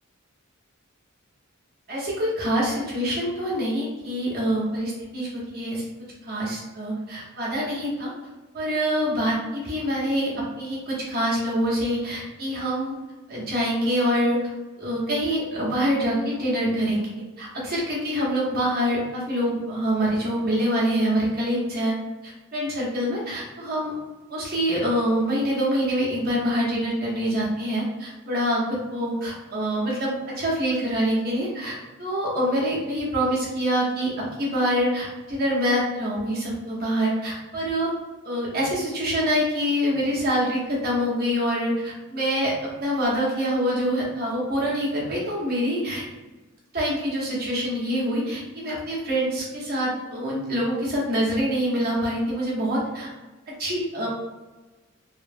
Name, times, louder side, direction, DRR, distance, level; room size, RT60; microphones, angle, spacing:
voice 1, 1.9-5.8 6.2-8.1 8.5-10.3 10.6-13.0 13.3-14.4 14.8-17.1 17.4-21.9 22.2-23.9 24.3-37.9 38.2-46.0 46.7-53.1 53.6-54.1, equal, 45° right, -6 dB, 0.9 m, -25 dB
3.0 x 2.1 x 2.6 m, 1.2 s
head